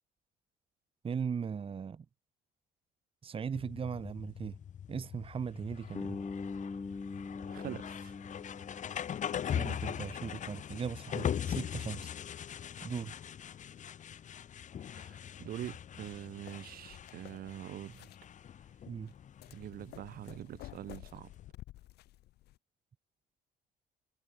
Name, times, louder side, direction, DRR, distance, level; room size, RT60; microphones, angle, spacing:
voice 1, 1.0-2.0 3.2-4.5 4.9-6.2 9.4-12.1 12.8-13.1 18.9-19.1, right 6 dB, 35° right, 1.5 m, -38 dB
sound 1, 3.5-21.5, left 9 dB, 45° left, 1.8 m, -41 dB
Bass guitar, 5.9-9.9, left 4 dB, 20° left, 2.2 m, -42 dB
voice 2, 7.5-8.1 14.9-18.1 19.5-21.3, right 12 dB, 60° right, 1.9 m, -44 dB
sound 2, 16.1-22.6, left 16 dB, 75° left, 1.6 m, -53 dB
cardioid pair, 110°, 17 cm